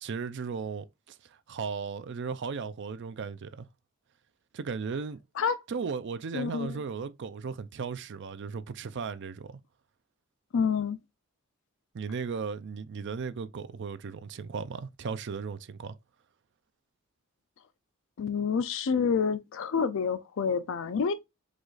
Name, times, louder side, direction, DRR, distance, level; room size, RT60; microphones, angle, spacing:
voice 1, 0.0-3.7 4.5-5.2 5.7-9.6 11.9-16.0, right 5 dB, 55° right, 0.5 m, -36 dB
voice 2, 6.3-6.8 10.5-11.0 18.2-21.1, left 6 dB, 60° left, 0.4 m, -28 dB
4.9 x 2.4 x 3.9 m
head